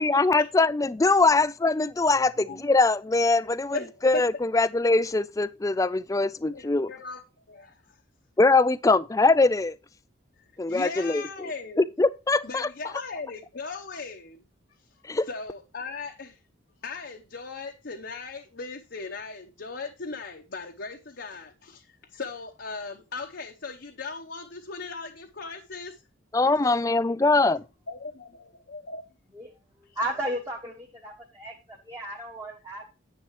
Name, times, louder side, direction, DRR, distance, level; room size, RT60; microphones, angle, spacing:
voice 1, 0.0-3.8 4.0-6.9 8.4-9.8 10.6-11.5 11.8-12.7 15.1-15.3 26.3-27.6, left 3 dB, 15° left, 0.3 m, -22 dB
voice 2, 2.1-2.7 3.7-4.2 6.4-8.0 10.4-11.9 12.4-14.4 15.2-16.4 16.8-26.0 26.4-26.5 27.9-29.0 29.9-30.0, left 4 dB, 55° left, 0.9 m, -38 dB
voice 3, 30.0-32.9, right 1 dB, 15° right, 1.2 m, -34 dB
9.6 x 7.7 x 3.1 m
head